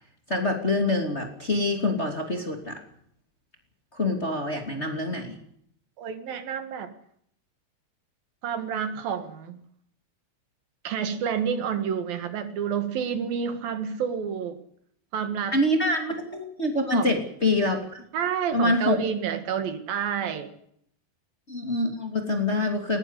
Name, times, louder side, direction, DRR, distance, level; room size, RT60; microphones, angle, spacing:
voice 1, 0.3-2.8 3.9-5.4 15.5-18.0 18.5-19.0 21.5-23.0, left 2 dB, 20° left, 4 dB, 2.5 m, -25 dB
voice 2, 6.0-6.9 8.4-9.6 10.9-14.6 15.1-15.6 16.9-17.2 18.1-20.5, right 7 dB, 70° right, 10 dB, 3.5 m, -29 dB
20.5 x 18.0 x 8.2 m, 0.69 s
omnidirectional pair, 4.4 m